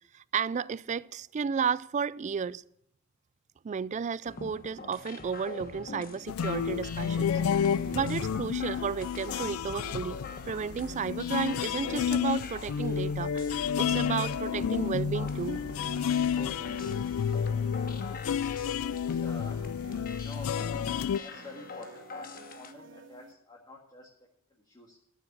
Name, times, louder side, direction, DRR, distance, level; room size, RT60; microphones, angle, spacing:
voice 1, 0.1-2.6 3.6-7.4 7.7-13.5 13.8-15.6, right 6 dB, 35° right, 0.3 m, -33 dB
sound 1, 4.2-22.7, left 4 dB, 45° left, 1.1 m, -45 dB
sound 2, 6.3-21.2, left 7 dB, 80° left, 0.4 m, -30 dB
sound 3, 7.3-23.3, right 2 dB, 60° right, 1.2 m, -50 dB
voice 2, 19.1-19.6 20.0-20.9 21.2-24.1 24.5-25.0, left 2 dB, 20° left, 1.9 m, -48 dB
13.5 x 7.4 x 6.0 m
head